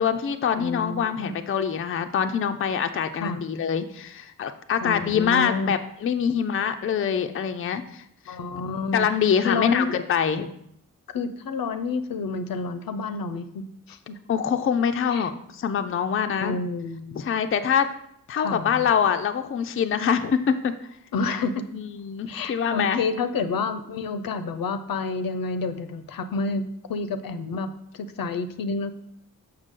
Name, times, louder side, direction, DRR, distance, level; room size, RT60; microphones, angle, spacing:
voice 1, 0.0-8.4 8.9-10.5 14.3-16.6 17.1-17.9 18.3-20.7 21.7-23.0, left 7 dB, 40° left, 8 dB, 0.4 m, -25 dB
voice 2, 0.5-1.3 3.2-3.4 4.8-5.7 8.3-9.1 9.4-10.0 11.1-14.2 15.1-15.3 16.4-17.4 18.3-18.9 21.1-21.7 22.3-28.9, left 4 dB, 80° left, 10 dB, 0.6 m, -29 dB
6.6 x 5.7 x 3.6 m, 0.73 s
wide cardioid pair, 135°, 34 cm